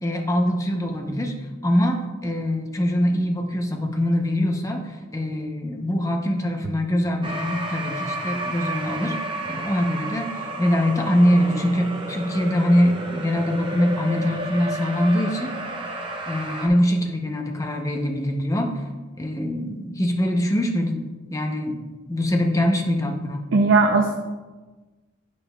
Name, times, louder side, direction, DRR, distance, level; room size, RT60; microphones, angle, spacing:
voice 1, 0.0-1.3 1.6-9.2 9.4-15.5 16.3-18.8 19.2-21.0 21.3-21.8 22.1-23.5, equal, 15° left, 3 dB, 0.6 m, -23 dB
sound 1, 7.2-16.7, right 1 dB, 25° right, 0.7 m, -32 dB
voice 2, 23.5-24.2, right 3 dB, 65° right, 3 dB, 0.5 m, -17 dB
8.7 x 6.4 x 2.2 m, 1.2 s
head